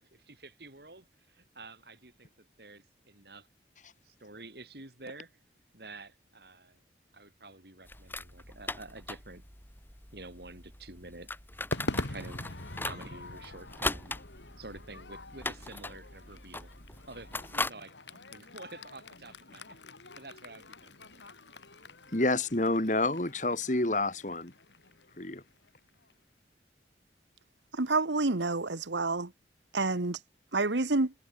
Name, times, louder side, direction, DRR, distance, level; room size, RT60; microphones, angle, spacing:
voice 1, 0.0-3.5 4.0-5.4 5.7-6.8 7.1-9.4 10.1-11.3 12.1-14.2 14.6-16.7 17.1-19.8 20.2-21.3, right 2 dB, 65° right, 5.6 m, -49 dB
sound 1, 7.9-17.7, left 2 dB, 10° left, 5.1 m, -40 dB
Crowd / Fireworks, 11.7-26.1, left 2 dB, 85° left, 3.1 m, -44 dB
voice 2, 22.1-24.5 25.2-25.4, left 2 dB, 45° left, 2.5 m, -28 dB
voice 3, 27.8-29.3 29.7-30.2 30.5-31.1, right 3 dB, 90° right, 1.4 m, -28 dB
head